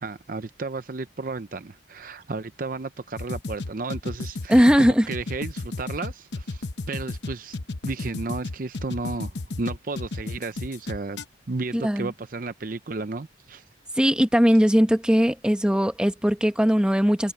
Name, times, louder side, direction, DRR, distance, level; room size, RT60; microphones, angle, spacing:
voice 1, 0.0-7.6 7.8-11.2 11.5-13.6, right 3 dB, 45° right, 0.6 m, -33 dB
sound 1, 3.2-11.2, left 2 dB, 65° left, 0.9 m, -32 dB
voice 2, 4.5-5.1 11.7-12.1 14.0-17.3, equal, 5° right, 1.2 m, -19 dB
head